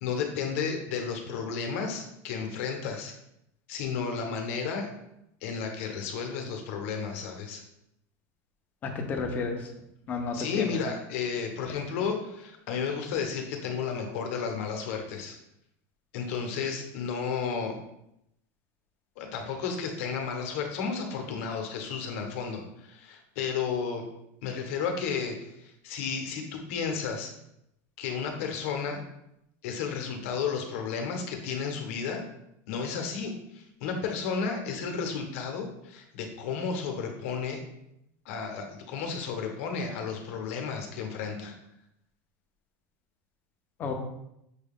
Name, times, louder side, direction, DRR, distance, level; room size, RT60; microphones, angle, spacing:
voice 1, 0.0-3.1 3.7-4.9 5.4-7.6 10.3-15.4 16.1-17.8 19.2-24.1 24.4-27.3 28.0-29.0 29.6-32.2 32.7-37.6 38.2-41.6, left 6 dB, 55° left, 4 dB, 0.8 m, -32 dB
voice 2, 8.8-9.7 10.1-10.7 43.8-43.9, left 4 dB, 20° left, 3 dB, 0.5 m, -31 dB
6.2 x 2.2 x 3.5 m, 0.81 s
supercardioid pair, 180°, 8 cm